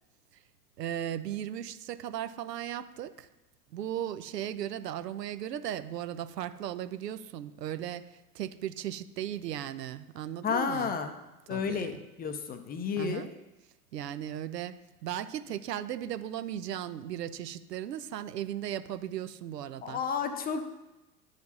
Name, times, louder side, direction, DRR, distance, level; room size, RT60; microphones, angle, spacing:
voice 1, 0.8-3.3 3.7-10.9 11.5-12.0 13.0-13.3 13.9-20.0, right 11 dB, 85° right, 13 dB, 0.6 m, -37 dB
voice 2, 10.4-11.1 11.5-13.3 19.8-20.6, left 6 dB, 20° left, 8 dB, 0.5 m, -31 dB
9.5 x 5.0 x 4.1 m, 1.1 s
hypercardioid pair, 95°, 47 cm